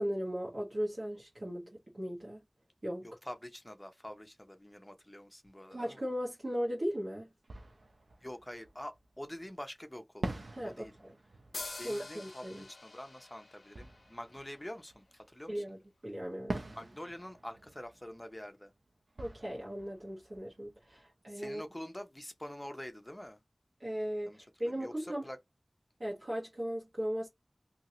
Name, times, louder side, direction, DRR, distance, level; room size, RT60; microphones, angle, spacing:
voice 1, 0.0-2.4 2.8-3.1 5.7-7.3 10.5-11.1 11.8-12.7 15.5-16.6 19.2-21.6 23.8-25.3 26.0-27.3, equal, 60° right, 1.2 m, -37 dB
voice 2, 3.0-6.0 8.2-10.3 10.6-10.9 11.8-15.6 16.7-18.7 21.3-23.4 24.3-25.4, left 1 dB, 20° left, 0.8 m, -46 dB
Fireworks, 6.8-6.9 7.4-9.4 10.2-15.6 16.5-21.2, right 2 dB, 80° right, 0.6 m, -46 dB
sound 1, 11.5-15.1, left 3 dB, 85° left, 0.5 m, -47 dB
2.8 x 2.8 x 2.7 m
wide cardioid pair, 50°, 0 cm